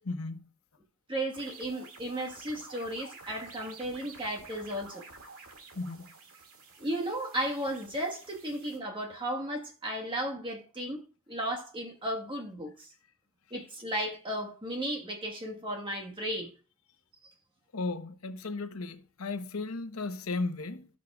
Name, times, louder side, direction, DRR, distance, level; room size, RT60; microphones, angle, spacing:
voice 1, 0.0-0.4 5.7-6.1 17.7-20.9, left 3 dB, 85° left, 0.9 m, -35 dB
voice 2, 1.1-5.0 6.8-12.9 13.5-16.5, right 1 dB, 25° right, 1.4 m, -35 dB
sound 1, 1.3-8.8, right 4 dB, 85° right, 2.2 m, -51 dB
17.0 x 6.4 x 2.4 m
head